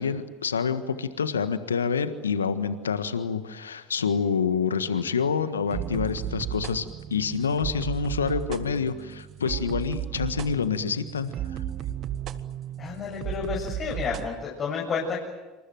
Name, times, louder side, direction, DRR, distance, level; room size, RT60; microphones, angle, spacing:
voice 1, 0.0-11.6, left 6 dB, 85° left, 11 dB, 1.5 m, -27 dB
sound 1, 5.7-14.3, right 11 dB, 45° right, 1.6 m, -34 dB
voice 2, 12.8-15.2, left 6 dB, 40° left, -1 dB, 7.4 m, -30 dB
27.5 x 26.0 x 7.8 m, 1.2 s
hypercardioid pair, 70°, 0 cm